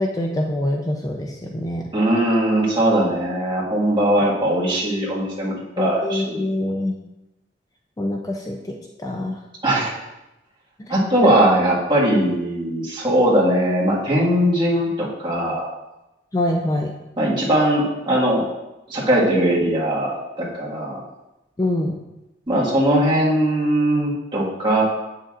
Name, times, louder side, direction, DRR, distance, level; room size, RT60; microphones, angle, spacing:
voice 1, 0.0-1.8 5.8-6.9 8.0-9.4 10.8-10.9 11.2-11.3 16.3-16.9 21.6-21.9, left 1 dB, 20° left, 1 dB, 0.4 m, -24 dB
voice 2, 1.9-6.5 9.6-9.9 10.9-15.7 17.2-18.5 18.9-21.0 22.5-24.8, right 1 dB, 25° right, -6 dB, 1.6 m, -20 dB
7.9 x 6.5 x 2.4 m, 0.97 s
head